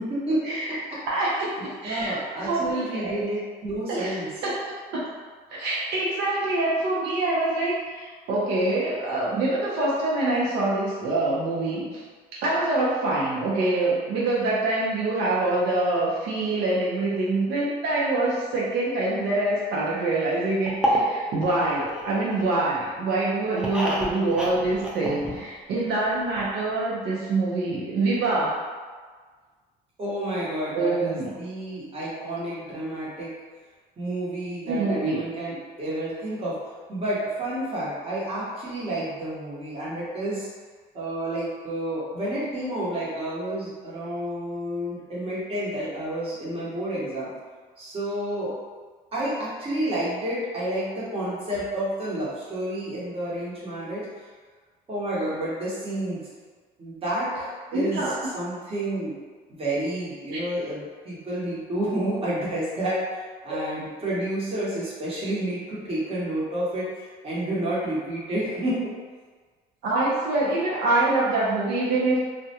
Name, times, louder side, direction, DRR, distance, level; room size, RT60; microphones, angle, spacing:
voice 1, 0.0-1.0 1.8-4.3 30.0-33.3 34.0-36.6 36.9-40.5 40.9-47.3 47.8-48.5 49.1-54.1 54.9-56.2 56.8-59.1 59.6-68.9, right 1 dB, 35° right, -8 dB, 1.0 m, -30 dB
voice 2, 1.1-3.1 3.9-5.0 5.5-12.0 12.4-28.6 30.7-31.3 34.7-35.2 57.7-58.1 60.3-60.4 69.8-72.3, right 2 dB, 80° right, -6 dB, 0.6 m, -25 dB
sound 1, 20.7-22.7 23.1-25.8 26.0-26.1 26.4-26.5, equal, 5° right, 0.4 m, -29 dB
2.3 x 2.1 x 2.7 m, 1.5 s
cardioid pair, 110°, 17 cm